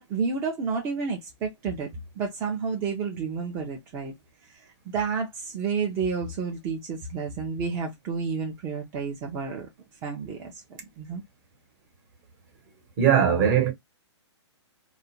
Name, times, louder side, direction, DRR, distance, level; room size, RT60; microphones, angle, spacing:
voice 1, 0.0-1.9 2.2-4.1 4.4-9.7 10.0-10.6 11.0-11.2, right 5 dB, 15° right, 0.4 m, -30 dB
voice 2, 13.0-13.7, right 8 dB, 40° right, 0.9 m, -20 dB
2.4 x 2.1 x 2.8 m
hypercardioid pair, 150°, 15 cm